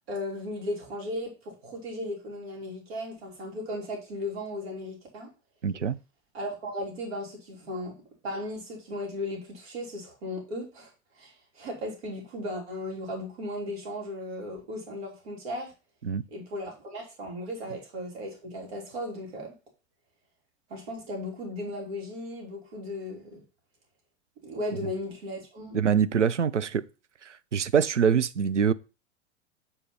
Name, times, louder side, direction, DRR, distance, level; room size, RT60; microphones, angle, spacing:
voice 1, 0.1-5.3 6.3-7.9 8.2-10.9 11.2-15.7 16.3-19.5 20.7-23.4 24.4-25.8, left 1 dB, 60° right, 3.2 m, -36 dB
voice 2, 5.6-6.0 16.0-16.2 25.7-26.8 27.5-28.7, right 7 dB, 85° right, 0.6 m, -24 dB
8.7 x 4.2 x 5.3 m
figure-of-eight pair, 90°, 35 cm